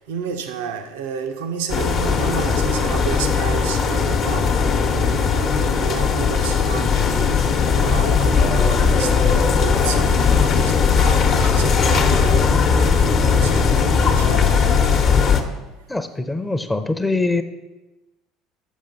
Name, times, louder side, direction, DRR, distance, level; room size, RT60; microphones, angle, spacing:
voice 1, 0.1-7.3 7.8-14.8, right 6 dB, 85° right, 6 dB, 0.7 m, -31 dB
sound 1, 1.7-15.4, left 5 dB, 50° left, 0.9 m, -18 dB
voice 2, 15.9-17.4, left 2 dB, 10° left, 9 dB, 0.6 m, -23 dB
7.2 x 5.2 x 5.1 m, 1.1 s
hypercardioid pair, 75°, 0 cm